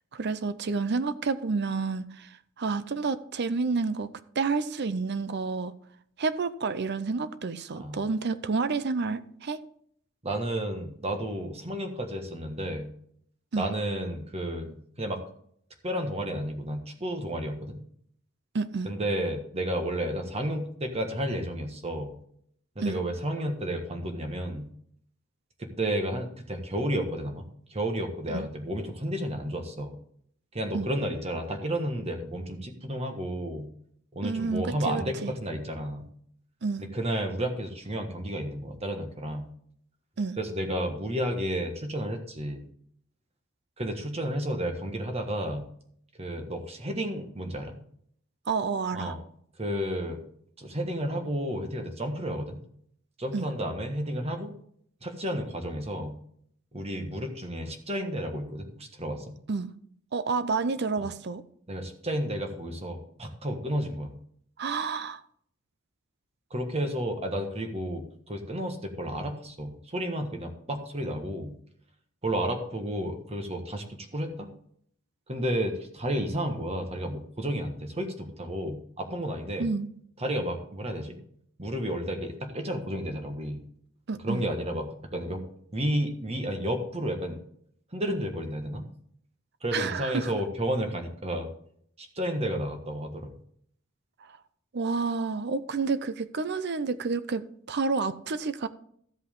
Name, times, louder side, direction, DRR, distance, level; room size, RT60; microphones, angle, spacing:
voice 1, 0.1-4.1 4.4-5.7 6.2-9.6 13.5-13.7 18.5-18.9 22.8-23.0 28.3-28.4 30.7-30.9 34.2-35.3 36.6-36.8 40.2-40.4 48.5-49.1 53.3-53.5 59.5-59.7 60.1-61.4 64.6-65.2 79.6-79.9 84.1-84.5 89.7-90.3 94.2-94.4 94.7-98.7, right 4 dB, 55° right, 0.6 m, -29 dB
voice 2, 10.2-12.9 13.5-15.2 15.8-17.8 18.8-22.1 22.7-24.7 25.6-30.0 30.5-33.7 34.1-36.1 36.8-39.5 40.4-42.7 43.8-45.7 46.2-47.8 48.9-49.2 49.6-50.2 50.6-52.6 53.2-54.5 55.0-56.1 56.7-59.4 61.7-64.1 66.5-71.5 72.2-74.5 75.3-79.7 80.2-81.2 81.6-83.6 84.2-85.4 85.7-87.4 87.9-88.9 89.6-91.5 92.0-93.3, right 1 dB, 30° right, 1.4 m, -32 dB
13.0 x 8.1 x 3.7 m
head